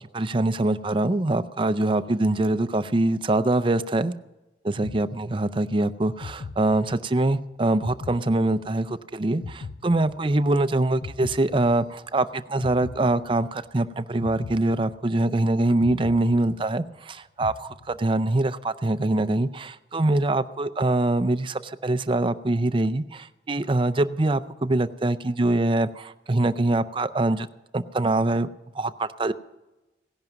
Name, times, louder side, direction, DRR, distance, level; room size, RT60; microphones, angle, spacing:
voice 1, 0.0-4.1 4.6-27.5 27.7-28.5 28.7-29.3, right 2 dB, 30° right, 12 dB, 0.5 m, -24 dB
sound 1, 4.8-5.7 6.2-7.3 7.8-9.0 9.4-10.6 11.0-12.2 12.6-13.7 14.2-15.4 15.8-17.0 17.4-18.3, left 4 dB, 80° left, 0.5 m, -40 dB
17.0 x 11.0 x 5.9 m, 1.1 s
head